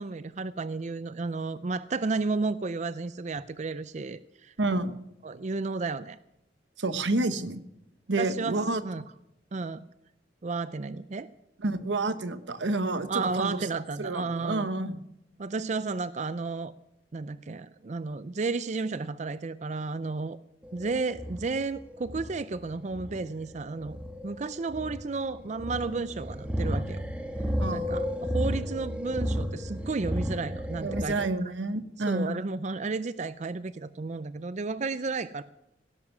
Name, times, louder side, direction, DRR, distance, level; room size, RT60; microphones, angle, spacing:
voice 1, 0.0-4.5 5.2-6.2 8.2-9.0 9.5-9.9 10.4-11.3 13.1-14.7 15.4-16.7 17.1-20.4 20.7-27.0 27.5-31.3 32.1-35.4, right 3 dB, 40° right, 14 dB, 0.5 m, -32 dB
voice 2, 4.6-5.0 6.8-7.6 8.1-8.8 11.6-13.6 14.0-15.0 27.6-27.9 30.8-32.4, right 2 dB, 85° right, 12 dB, 1.1 m, -29 dB
sound 1, 20.6-31.0, equal, 5° right, 1.3 m, -33 dB
17.5 x 11.0 x 6.0 m, 0.84 s
head